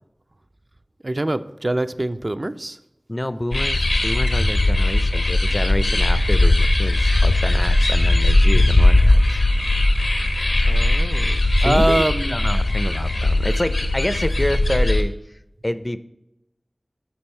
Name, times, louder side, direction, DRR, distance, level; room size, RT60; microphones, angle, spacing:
voice 1, 1.0-2.8 10.6-12.4, right 1 dB, 50° right, 10 dB, 0.4 m, -24 dB
voice 2, 3.1-9.4 11.6-15.1 15.6-16.0, left 1 dB, 35° left, 12 dB, 0.4 m, -27 dB
sound 1, 3.5-15.0, left 2 dB, 85° left, 0.8 m, -18 dB
7.1 x 6.0 x 4.3 m, 0.89 s
wide cardioid pair, 45°, 0 cm